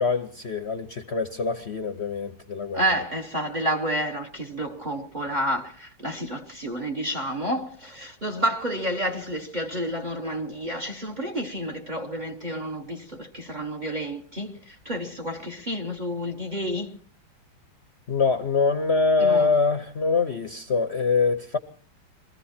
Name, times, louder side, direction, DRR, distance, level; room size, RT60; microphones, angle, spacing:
voice 1, 0.0-2.9 18.1-21.6, left 4 dB, 45° left, 0.9 m, -24 dB
voice 2, 2.7-17.0 19.2-19.5, right 1 dB, 30° right, 1.1 m, -30 dB
22.0 x 15.0 x 4.3 m
omnidirectional pair, 2.0 m